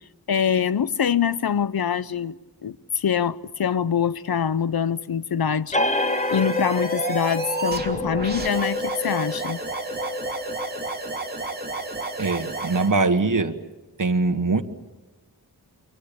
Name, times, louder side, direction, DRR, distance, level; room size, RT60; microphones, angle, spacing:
voice 1, 0.3-5.8 6.3-9.6, left 7 dB, 65° left, 0.8 m, -24 dB
sound 1, 5.7-12.9, left 2 dB, 15° left, 1.3 m, -29 dB
sound 2, 5.8-12.9, right 3 dB, 25° right, 2.7 m, -32 dB
voice 2, 12.2-13.5 14.0-14.6, right 3 dB, 50° right, 1.6 m, -22 dB
29.0 x 24.0 x 7.0 m
wide cardioid pair, 95°, 40 cm